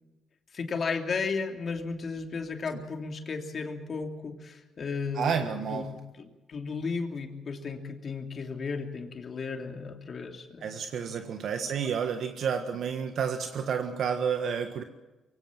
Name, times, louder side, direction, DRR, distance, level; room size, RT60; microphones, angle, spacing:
voice 1, 0.5-10.7 11.1-11.2, left 4 dB, 45° left, 5 dB, 2.9 m, -34 dB
voice 2, 5.1-5.9 10.6-14.8, right 7 dB, 65° right, 7 dB, 1.5 m, -30 dB
23.0 x 17.0 x 7.5 m, 1.1 s
cardioid pair, 90°, 0 cm